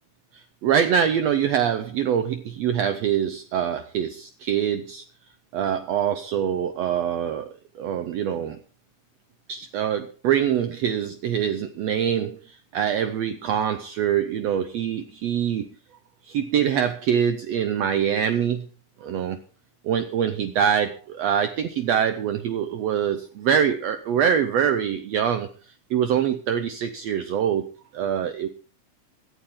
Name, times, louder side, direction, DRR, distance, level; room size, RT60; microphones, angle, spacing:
voice 1, 0.3-5.0 5.5-7.5 7.7-8.6 9.5-15.7 16.2-18.7 19.0-19.4 19.8-25.5 25.9-27.7 27.9-28.5, right 8 dB, 70° right, 10 dB, 1.6 m, -24 dB
17.0 x 11.5 x 3.7 m, 0.37 s
omnidirectional pair, 3.7 m